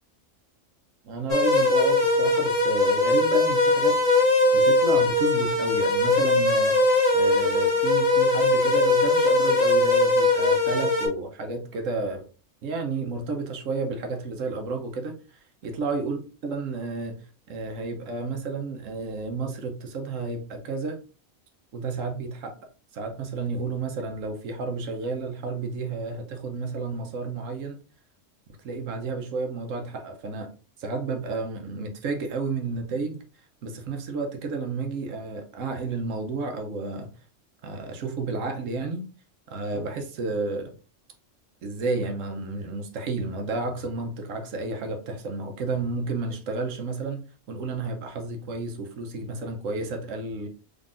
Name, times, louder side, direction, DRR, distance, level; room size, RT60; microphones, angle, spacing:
voice 1, 1.0-4.0 4.5-6.8 7.1-12.3 12.6-17.2 17.5-21.0 21.7-22.5 22.9-27.8 28.6-30.5 30.8-33.2 33.6-37.1 37.6-39.0 39.5-40.7 41.6-47.2 47.5-50.5, right 3 dB, 80° right, 1.2 m, -31 dB
sound 1, 1.3-11.1, left 2 dB, 30° left, 1.3 m, -21 dB
3.8 x 3.6 x 2.4 m
omnidirectional pair, 1.3 m